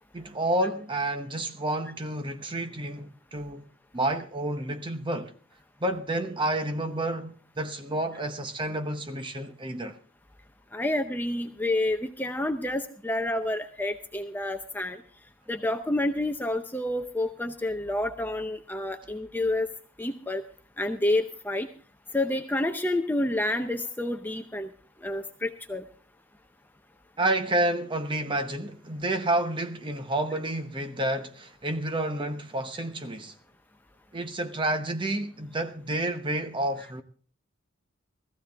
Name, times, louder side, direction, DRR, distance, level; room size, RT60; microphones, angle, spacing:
voice 1, 0.1-3.7 3.9-5.3 5.8-10.0 27.2-33.4 34.1-37.0, right 1 dB, 25° right, 0.9 m, -30 dB
voice 2, 10.7-15.0 15.5-19.7 20.0-20.4 20.8-21.7 22.1-24.7 25.0-25.9, left 1 dB, 10° left, 0.7 m, -29 dB
17.5 x 14.5 x 3.5 m
head